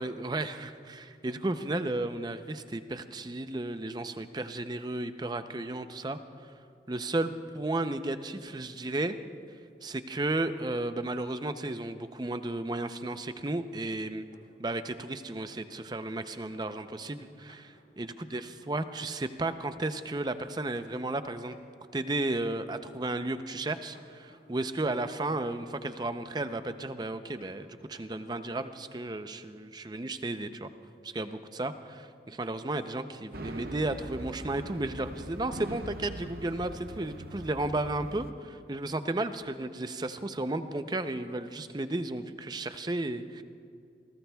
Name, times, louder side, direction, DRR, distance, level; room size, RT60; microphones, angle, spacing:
voice 1, 0.0-6.5 6.9-9.2 9.8-14.2 14.6-21.6 21.9-30.7 31.0-43.4, right 2 dB, 25° right, 10 dB, 0.6 m, -34 dB
sound 1, 13.6-15.0 15.3-21.1 21.4-22.6 23.5-25.3 27.3-27.5 27.9-28.1 28.4-29.1, left 1 dB, 55° left, 3.8 m, -62 dB
sound 2, 33.3-38.3, right 2 dB, 55° right, 0.8 m, -42 dB
28.0 x 18.5 x 2.3 m, 2.4 s
head